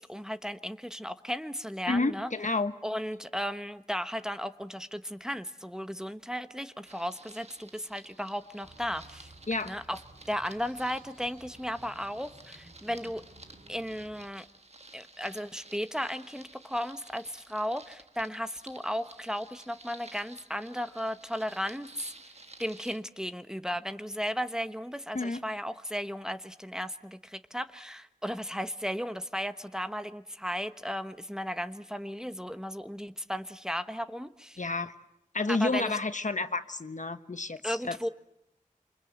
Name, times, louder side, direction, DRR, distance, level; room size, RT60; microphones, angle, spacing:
voice 1, 0.0-2.3 2.8-9.3 9.6-10.0 10.3-13.3 13.7-14.4 14.9-22.1 22.6-34.6 35.5-36.0 37.6-38.1, equal, 5° right, 9 dB, 1.1 m, -35 dB
voice 2, 1.9-2.7 9.5-9.7 25.1-25.4 34.6-34.9 35.3-38.1, left 3 dB, 60° left, 10 dB, 1.2 m, -30 dB
sound 1, 6.9-23.0, right 2 dB, 50° right, 1.4 m, -53 dB
sound 2, 8.6-14.3, right 1 dB, 75° right, 5.9 m, -55 dB
27.5 x 24.5 x 8.0 m, 0.84 s
wide cardioid pair, 60°, 14 cm